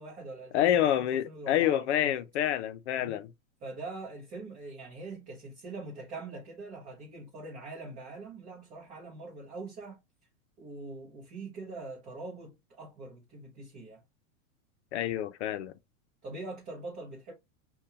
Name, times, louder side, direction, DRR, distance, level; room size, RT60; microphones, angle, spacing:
voice 1, 0.0-2.1 2.9-3.2 3.6-10.0 10.6-14.0 16.2-17.3, right 3 dB, 20° right, 0.7 m, -43 dB
voice 2, 0.5-3.3 14.9-15.7, left 11 dB, 55° left, 0.6 m, -27 dB
5.3 x 2.3 x 2.7 m
supercardioid pair, 165°, 41 cm